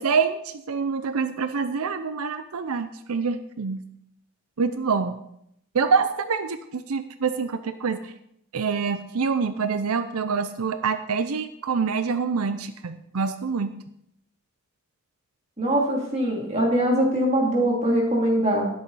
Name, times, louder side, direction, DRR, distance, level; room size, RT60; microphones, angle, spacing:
voice 1, 0.0-3.8 4.6-5.2 5.7-8.1 8.5-13.7, right 5 dB, 90° right, 11 dB, 0.6 m, -26 dB
voice 2, 15.6-18.7, right 1 dB, 30° right, -1 dB, 2.8 m, -22 dB
12.5 x 10.0 x 4.2 m, 0.75 s
head